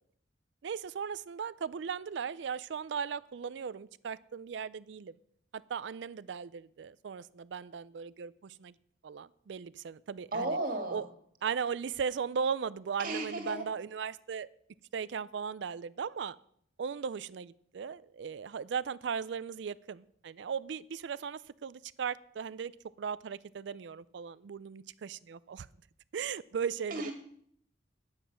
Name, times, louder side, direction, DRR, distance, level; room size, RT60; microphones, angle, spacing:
voice 1, 0.6-5.1 5.5-8.7 9.0-10.6 10.9-11.0 11.4-14.5 14.9-16.4 16.8-22.7 23.0-25.7 26.1-27.1, right 6 dB, 65° right, 19 dB, 0.4 m, -37 dB
voice 2, 10.3-11.0 13.0-13.6 26.9-27.1, right 2 dB, 45° right, 4 dB, 2.3 m, -34 dB
10.0 x 8.9 x 6.2 m, 0.66 s
head